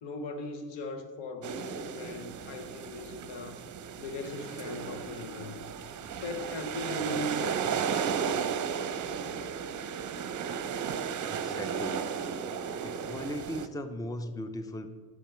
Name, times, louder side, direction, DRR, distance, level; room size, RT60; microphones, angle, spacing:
voice 1, 0.0-3.6 4.0-5.6 6.2-8.1, left 2 dB, 80° left, 7 dB, 1.1 m, -39 dB
sound 1, 1.4-13.7, right 7 dB, 45° right, 0.7 m, -34 dB
voice 2, 11.3-12.1 12.8-14.9, left 1 dB, 10° left, 9 dB, 0.5 m, -38 dB
9.0 x 4.6 x 7.1 m, 1.5 s
cardioid pair, 100°, 42 cm